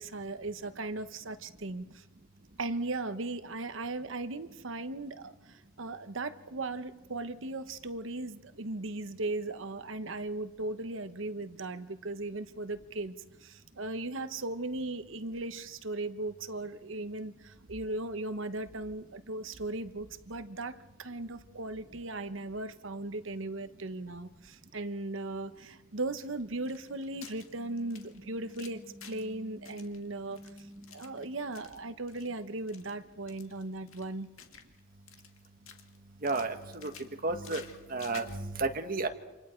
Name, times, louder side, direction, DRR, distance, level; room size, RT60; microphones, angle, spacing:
voice 1, 0.0-2.0 2.6-13.1 13.4-28.8 29.1-34.3, right 2 dB, 70° right, 11 dB, 1.1 m, -37 dB
sound 1, 26.2-29.3 29.6-31.8 32.1-32.3 32.6-32.9 33.3-34.8 35.1-36.0 36.2-38.4, left 7 dB, 90° left, 2.0 m, -52 dB
sound 2, 27.6-32.8, equal, 15° right, 0.9 m, -53 dB
voice 2, 36.2-36.9 37.2-37.6 37.9-39.1, right 3 dB, 45° right, 6 dB, 1.6 m, -32 dB
28.5 x 26.5 x 4.5 m, 1.1 s
head